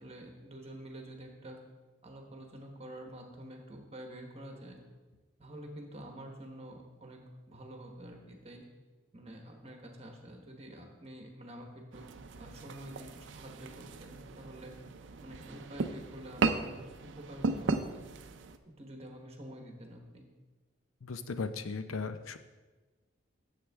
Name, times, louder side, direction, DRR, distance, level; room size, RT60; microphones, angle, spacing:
voice 1, 0.0-1.6 2.0-4.8 5.4-7.2 7.5-8.6 9.1-12.0 12.4-14.7 15.2-16.8 17.0-18.0 18.6-20.3, right 1 dB, 30° right, 2 dB, 1.1 m, -48 dB
sound 1, 11.9-18.6, right 3 dB, 65° right, 0.5 m, -36 dB
voice 2, 21.0-22.4, left 4 dB, 85° left, 10 dB, 0.6 m, -37 dB
9.7 x 7.5 x 3.5 m, 1.3 s
head